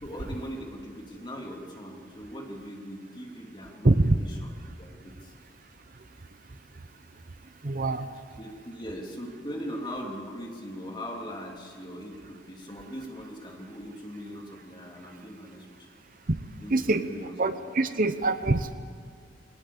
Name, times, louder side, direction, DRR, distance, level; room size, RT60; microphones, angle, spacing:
voice 1, 0.0-4.5 4.8-5.3 8.4-15.9 16.6-17.4 17.8-17.9, equal, 25° left, 0 dB, 3.1 m, -40 dB
voice 2, 3.8-4.1 7.6-8.1 16.7-17.1 17.4-18.7, right 2 dB, 45° right, 11 dB, 0.8 m, -24 dB
22.0 x 18.5 x 8.5 m, 2.3 s
head